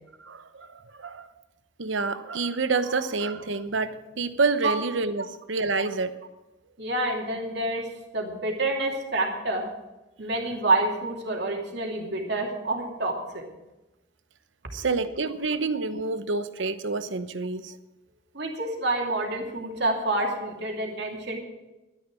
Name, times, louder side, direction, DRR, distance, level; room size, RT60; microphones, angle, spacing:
voice 1, 0.2-1.3 1.8-6.1 14.7-17.8, right 3 dB, 85° right, 11 dB, 0.8 m, -28 dB
voice 2, 6.8-9.7 10.2-13.4 18.3-21.4, right 2 dB, 65° right, 0 dB, 2.7 m, -28 dB
12.0 x 10.5 x 6.2 m, 1.0 s
head